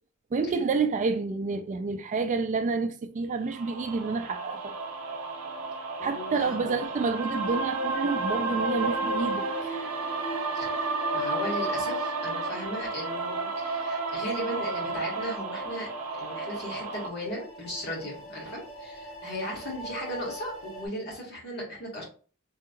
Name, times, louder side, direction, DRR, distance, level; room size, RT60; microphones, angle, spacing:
voice 1, 0.3-4.7 6.0-9.9, right 4 dB, 35° right, 0.3 m, -29 dB
sound 1, 3.5-17.1, right 3 dB, 90° right, 0.5 m, -32 dB
voice 2, 6.0-7.0 10.5-15.9 16.2-22.0, equal, 50° left, 1.6 m, -37 dB
sound 2, 6.6-20.9, right 1 dB, 65° left, 1.1 m, -43 dB
3.4 x 3.1 x 2.3 m
head